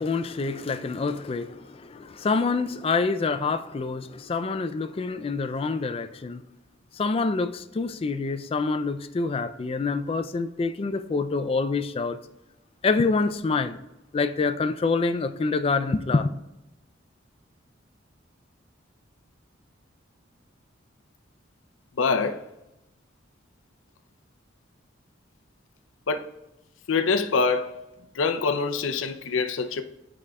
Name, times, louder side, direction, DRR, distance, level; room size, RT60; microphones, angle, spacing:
voice 1, 0.0-6.4 6.9-12.2 12.8-13.8 14.1-16.3, left 4 dB, 30° left, 0.3 m, -26 dB
voice 2, 22.0-22.4 26.1-26.2 26.9-27.8 28.1-29.8, left 4 dB, 80° left, 0.5 m, -25 dB
9.6 x 4.9 x 2.3 m
head